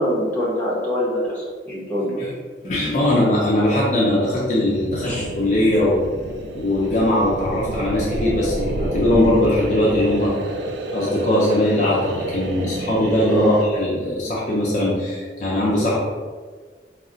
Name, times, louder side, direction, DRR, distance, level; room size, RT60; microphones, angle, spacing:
voice 1, 0.0-2.2 3.0-3.1 5.0-5.3 13.3-13.6, equal, 10° left, -7 dB, 0.8 m, -23 dB
voice 2, 2.6-6.1 6.5-10.4 10.9-16.0, left 1 dB, 40° left, -6 dB, 0.5 m, -20 dB
sound 1, 4.3-13.7, right 1 dB, 85° right, 0.3 m, -29 dB
2.4 x 2.1 x 3.8 m, 1.5 s
head